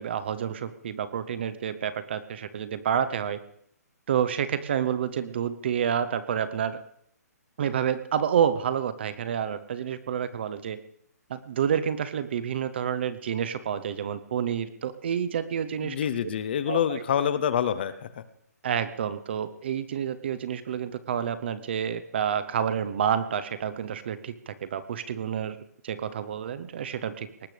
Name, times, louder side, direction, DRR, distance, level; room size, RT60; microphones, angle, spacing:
voice 1, 0.0-3.4 4.1-6.8 7.6-10.8 11.3-16.0 16.7-17.0 18.6-25.6 25.8-27.3, right 8 dB, 40° right, 13 dB, 0.8 m, -29 dB
voice 2, 15.8-18.1, left 9 dB, 35° left, 13 dB, 0.7 m, -26 dB
19.5 x 18.0 x 3.4 m, 0.70 s
hypercardioid pair, 170°, 9 cm